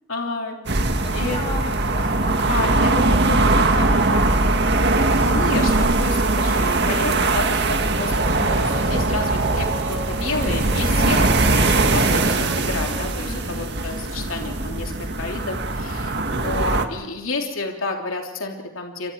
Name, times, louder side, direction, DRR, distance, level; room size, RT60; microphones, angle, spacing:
voice 1, 0.1-0.6 1.1-1.4 2.5-3.6 5.1-14.9 15.2-19.1, left 3 dB, 85° left, 1 dB, 3.2 m, -30 dB
sound 1, 0.7-16.9, right 2 dB, 55° right, 1.9 m, -20 dB
voice 2, 1.0-2.3 3.5-4.7 13.2-13.5, left 2 dB, 25° left, 1 dB, 7.5 m, -35 dB
sound 2, 7.9-13.0, right 1 dB, 10° right, 7.8 m, -37 dB
30.0 x 26.0 x 4.7 m, 1.0 s
head